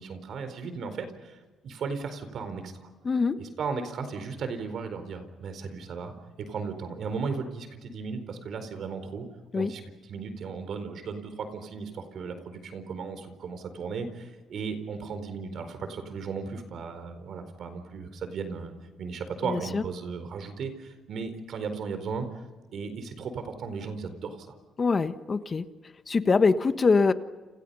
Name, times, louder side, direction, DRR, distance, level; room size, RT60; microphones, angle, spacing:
voice 1, 0.0-1.4 1.6-2.9 3.4-9.2 9.5-9.8 10.1-18.7 19.0-22.3 22.7-24.5, right 5 dB, 65° right, 9 dB, 4.3 m, -36 dB
voice 2, 3.0-3.4 9.5-9.7 19.4-19.8 24.8-25.6 26.1-27.1, left 4 dB, 35° left, 10 dB, 1.4 m, -23 dB
30.0 x 28.5 x 5.6 m, 1.2 s
cardioid pair, 90°, 0 cm